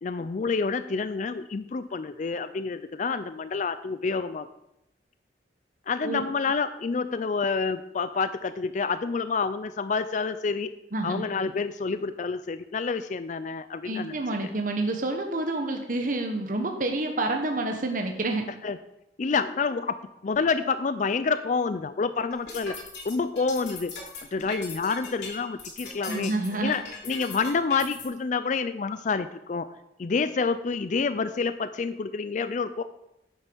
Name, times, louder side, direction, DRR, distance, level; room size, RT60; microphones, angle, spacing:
voice 1, 0.0-4.5 5.9-10.7 11.0-14.2 18.6-18.8 19.2-20.0 20.2-22.7 23.0-23.9 24.3-26.3 26.6-29.7 30.0-32.8, left 4 dB, 45° left, 12 dB, 0.4 m, -28 dB
voice 2, 10.9-11.2 13.8-18.5 26.1-26.7, right 2 dB, 45° right, 4 dB, 1.1 m, -28 dB
sound 1, 22.3-28.1, left 3 dB, 75° left, 3.1 m, -39 dB
9.9 x 6.6 x 6.1 m, 0.86 s
head